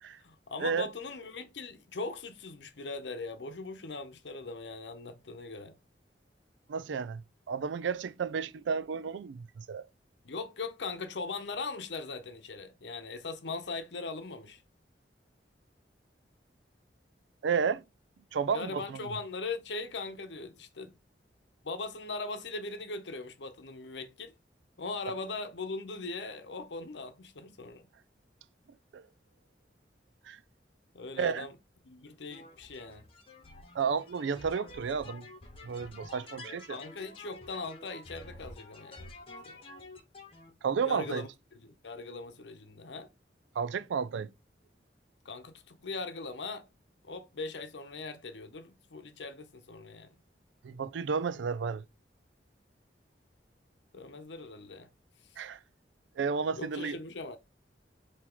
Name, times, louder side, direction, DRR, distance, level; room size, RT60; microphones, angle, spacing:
voice 1, 0.2-5.8 10.2-14.6 18.5-21.0 21.6-24.3 24.8-27.9 30.9-31.5 31.8-33.0 36.7-39.0 39.4-39.6 40.8-41.3 41.5-43.1 45.2-46.7 47.0-50.1 53.9-54.9 56.6-57.4, left 3 dB, 75° left, 0.8 m, -40 dB
voice 2, 6.7-7.2 7.5-9.9 17.4-17.8 18.3-19.1 28.9-29.1 30.3-30.4 31.2-31.5 33.7-35.3 35.6-36.8 40.6-41.2 43.6-44.3 50.6-51.8 55.4-55.6 56.2-57.0, right 6 dB, 85° right, 0.4 m, -32 dB
sound 1, 32.3-40.5, left 2 dB, 30° left, 1.1 m, -49 dB
4.4 x 2.9 x 3.7 m
head